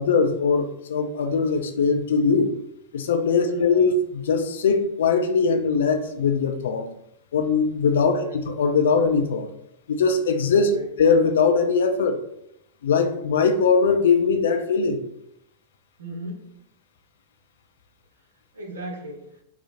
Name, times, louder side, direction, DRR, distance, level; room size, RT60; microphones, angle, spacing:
voice 1, 0.0-2.5 2.9-6.9 7.3-9.5 9.9-10.7 11.0-12.2 12.8-15.0, left 5 dB, 60° left, 7 dB, 0.4 m, -21 dB
voice 2, 3.5-3.8 8.2-8.4 10.7-10.9 16.0-16.5 18.5-19.3, equal, 70° right, 1 dB, 0.8 m, -36 dB
4.2 x 2.4 x 2.5 m, 0.78 s
figure-of-eight pair, 90°, 0 cm